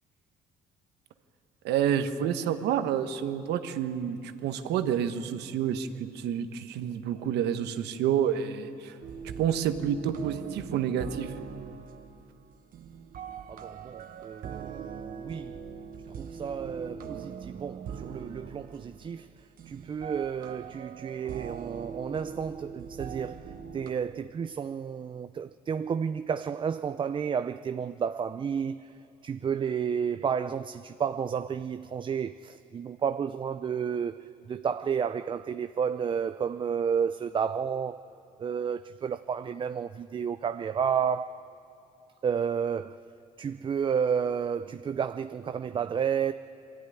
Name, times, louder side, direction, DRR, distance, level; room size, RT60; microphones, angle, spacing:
voice 1, 1.6-9.0 9.4-11.3, right 9 dB, 80° right, 1.2 m, -29 dB
sound 1, 9.0-23.9, right 6 dB, 55° right, 1.2 m, -42 dB
voice 2, 13.5-15.6 16.2-19.3 19.7-28.9 29.2-38.1 38.4-41.4 42.2-43.0 43.4-46.3, right 7 dB, 30° right, 0.4 m, -31 dB
22.0 x 13.5 x 9.8 m
cardioid pair, 110°, 17 cm